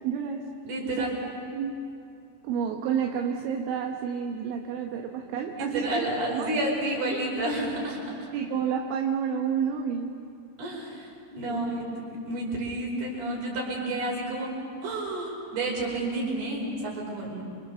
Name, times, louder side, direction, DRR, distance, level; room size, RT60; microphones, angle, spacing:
voice 1, 0.0-0.5 0.9-1.8 2.4-6.5 7.1-7.2 8.3-10.1 11.5-11.7, right 7 dB, 80° right, 2 dB, 3.7 m, -30 dB
voice 2, 0.6-1.2 5.8-8.3 10.6-14.5 14.8-17.4, right 1 dB, 55° right, -2 dB, 7.0 m, -30 dB
30.0 x 24.5 x 7.0 m, 2.5 s
omnidirectional pair, 5.6 m